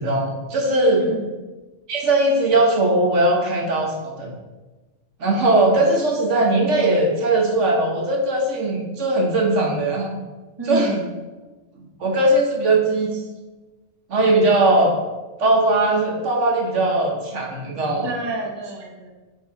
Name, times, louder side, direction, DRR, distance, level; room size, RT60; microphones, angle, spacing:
voice 1, 0.0-1.0 1.9-4.3 5.2-10.2 10.7-10.9 12.0-13.1 14.1-15.0 15.4-18.1, right 2 dB, 75° right, -1 dB, 1.5 m, -19 dB
voice 2, 0.9-1.3 10.6-11.1 18.0-19.1, right 2 dB, 25° right, 0 dB, 0.8 m, -28 dB
7.9 x 2.8 x 4.8 m, 1.2 s
omnidirectional pair, 1.2 m